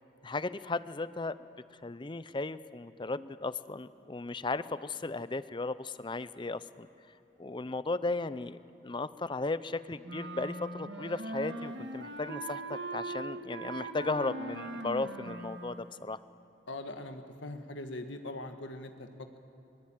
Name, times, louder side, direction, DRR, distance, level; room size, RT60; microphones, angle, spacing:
voice 1, 0.2-1.4 1.8-6.9 7.4-16.2, left 3 dB, 25° left, 15 dB, 0.6 m, -36 dB
Wind instrument woodwind instrument, 10.0-15.9, right 2 dB, 65° right, 1.7 m, -40 dB
voice 2, 16.7-19.4, left 2 dB, 80° left, 6 dB, 1.5 m, -42 dB
23.0 x 21.5 x 8.9 m, 3.0 s
head